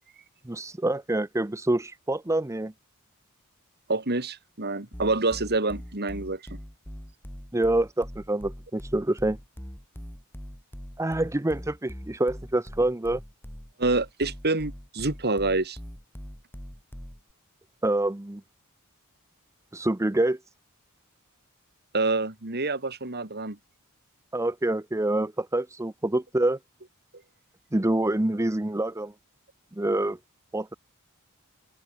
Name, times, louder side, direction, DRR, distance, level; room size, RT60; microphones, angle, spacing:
voice 1, 0.4-2.7 7.5-9.4 11.0-13.2 17.8-18.4 19.7-20.4 24.3-26.6 27.7-29.1 29.7-30.2 30.5-30.7, right 1 dB, 15° right, 0.7 m, -26 dB
voice 2, 3.9-6.6 13.8-15.8 21.9-23.6, right 3 dB, 45° right, 3.2 m, -27 dB
sound 1, 4.9-17.3, equal, 10° left, 2.1 m, -42 dB
open air
head